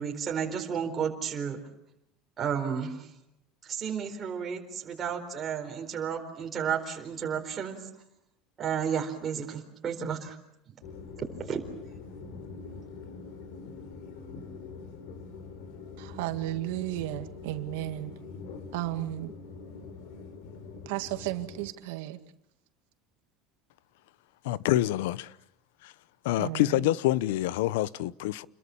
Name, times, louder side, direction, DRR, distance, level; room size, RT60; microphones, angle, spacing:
voice 1, 0.0-1.6 2.4-3.1 3.6-7.8 8.6-10.4 11.2-11.6 12.2-12.4, right 7 dB, 25° right, 4.2 m, -32 dB
sound 1, 10.8-21.7, left 4 dB, 65° left, 4.2 m, -44 dB
voice 2, 16.0-18.1 18.7-19.3 20.9-22.2 26.4-26.6, right 16 dB, 80° right, 1.9 m, -33 dB
voice 3, 24.4-25.3 25.8-25.9 26.2-28.5, left 15 dB, 85° left, 0.9 m, -27 dB
29.0 x 22.0 x 7.1 m
cardioid pair, 165°, 0 cm